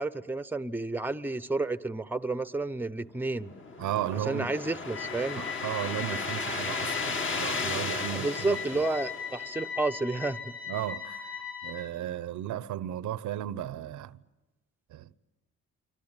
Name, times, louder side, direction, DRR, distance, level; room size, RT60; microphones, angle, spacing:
voice 1, 0.0-3.5 4.3-5.4 8.1-10.5, right 2 dB, 5° right, 0.9 m, -31 dB
sound 1, 3.2-9.7, left 4 dB, 40° left, 2.5 m, -35 dB
voice 2, 3.8-4.5 5.4-8.9 10.7-14.2 14.9-15.2, right 12 dB, 75° right, 0.9 m, -35 dB
sound 2, 4.9-11.8, left 7 dB, 60° left, 5.7 m, -39 dB
25.5 x 24.5 x 9.0 m
cardioid pair, 90°, 30 cm